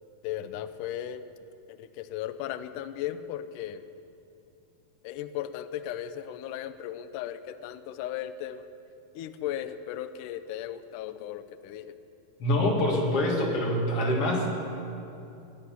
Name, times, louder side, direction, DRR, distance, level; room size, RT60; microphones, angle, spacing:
voice 1, 0.2-1.3 1.7-3.8 5.0-8.7 9.1-12.0, left 11 dB, 80° left, 11 dB, 1.8 m, -36 dB
voice 2, 12.4-14.5, left 1 dB, 45° left, -1 dB, 2.6 m, -25 dB
20.5 x 9.7 x 5.8 m, 2.7 s
omnidirectional pair, 4.2 m